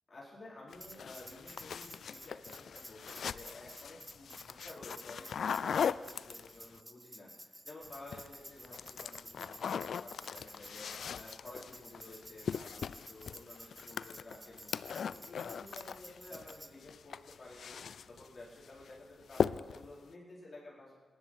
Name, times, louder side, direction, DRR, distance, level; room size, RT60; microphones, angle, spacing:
voice 1, 0.1-20.9, left 2 dB, 40° left, -6 dB, 4.6 m, -52 dB
sound 1, 0.7-6.8 7.9-8.3 8.6-16.5 16.8-18.3 18.6-18.9 19.3-19.9, left 7 dB, 75° left, 0.3 m, -39 dB
Tambourine, 0.8-16.7, right 1 dB, 10° right, 0.8 m, -52 dB
18.0 x 11.0 x 4.7 m, 1.5 s
cardioid pair, 80°, 0 cm